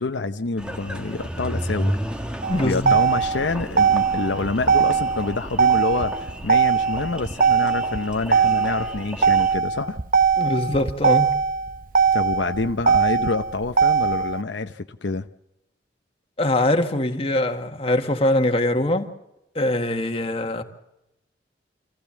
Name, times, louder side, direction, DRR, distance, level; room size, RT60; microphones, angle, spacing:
voice 1, 0.0-2.0 2.6-10.0 12.1-15.3, left 3 dB, 80° left, 0.8 m, -27 dB
Engine, 0.6-9.5, equal, 5° right, 1.6 m, -33 dB
Motor vehicle (road), 2.4-14.4, right 6 dB, 50° right, 0.8 m, -20 dB
voice 2, 2.5-3.0 10.4-11.4 16.4-19.1 19.6-20.6, left 1 dB, 30° left, 1.8 m, -22 dB
26.5 x 16.0 x 7.1 m
head